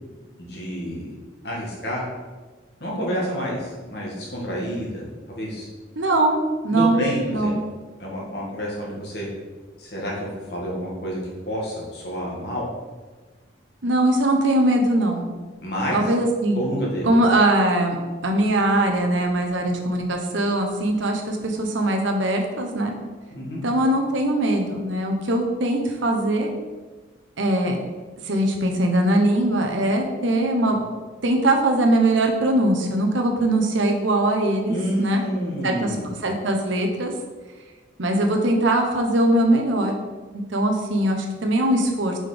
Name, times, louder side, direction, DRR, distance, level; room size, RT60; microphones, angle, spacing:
voice 1, 0.4-1.2 1.4-2.1 2.8-5.7 6.7-7.5 8.0-9.3 9.8-11.2 11.5-12.7 15.6-16.0 16.5-17.1 23.3-23.6 34.7-36.1, equal, 55° left, -4 dB, 1.8 m, -29 dB
voice 2, 6.0-7.6 13.8-15.3 15.9-16.6 17.0-18.0 18.2-22.9 23.6-26.5 27.4-27.8 28.2-30.9 31.2-35.2 35.6-36.0 36.2-37.1 38.0-39.9 40.5-42.2, right 1 dB, 80° right, 3 dB, 0.9 m, -21 dB
5.2 x 4.0 x 5.0 m, 1.3 s
head